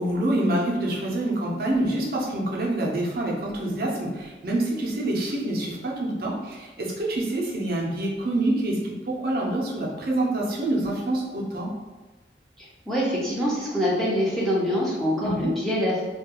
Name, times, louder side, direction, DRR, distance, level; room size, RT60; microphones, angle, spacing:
voice 1, 0.0-11.7 15.2-15.5, right 1 dB, 55° right, -2 dB, 0.5 m, -26 dB
voice 2, 12.6-16.0, equal, ahead, -7 dB, 0.5 m, -25 dB
2.3 x 2.2 x 2.8 m, 1.2 s
head